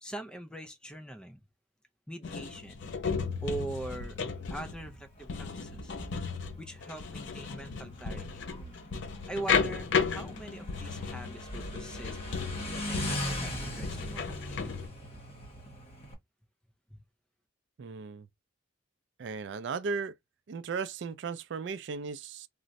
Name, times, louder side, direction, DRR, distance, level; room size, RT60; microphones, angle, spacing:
voice 1, 0.0-1.4 2.1-2.8 3.4-4.2 4.5-5.9 6.6-8.4 9.3-12.2 12.7-14.7 16.9-17.0, right 2 dB, 5° left, 0.4 m, -42 dB
sound 1, 2.2-14.9, left 5 dB, 65° left, 0.5 m, -34 dB
Motorcycle, 3.2-16.1, equal, 30° left, 1.1 m, -41 dB
voice 2, 17.8-18.3 19.2-20.2 20.5-22.5, right 5 dB, 60° right, 0.3 m, -36 dB
2.5 x 2.0 x 3.9 m
head